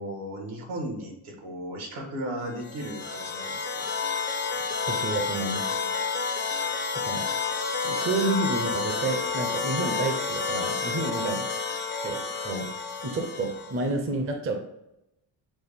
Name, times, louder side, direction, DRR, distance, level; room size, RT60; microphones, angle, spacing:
voice 1, 0.0-3.9 11.1-11.3, right 1 dB, 75° right, 2 dB, 1.4 m, -36 dB
sound 1, 2.6-13.8, left 5 dB, 25° left, 0.4 m, -30 dB
voice 2, 4.6-5.7 6.5-6.7 6.9-7.3 7.8-11.5 12.0-12.7 13.0-14.6, right 2 dB, 25° right, 4 dB, 0.6 m, -30 dB
6.1 x 2.1 x 3.5 m, 0.85 s
cardioid pair, 105°, 50 cm